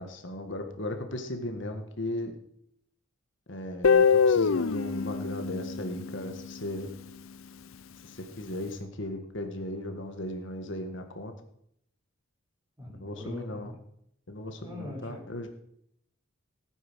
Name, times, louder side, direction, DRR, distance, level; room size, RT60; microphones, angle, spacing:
voice 1, 0.0-2.4 3.5-6.9 8.0-11.3 12.9-13.7 14.3-15.5, left 1 dB, 60° left, 5 dB, 1.8 m, -37 dB
Guitar, 3.8-6.8, left 5 dB, 80° left, 0.6 m, -24 dB
voice 2, 12.8-13.7 14.6-15.2, left 1 dB, 15° right, -3 dB, 5.6 m, -41 dB
18.5 x 9.2 x 6.4 m, 0.74 s
head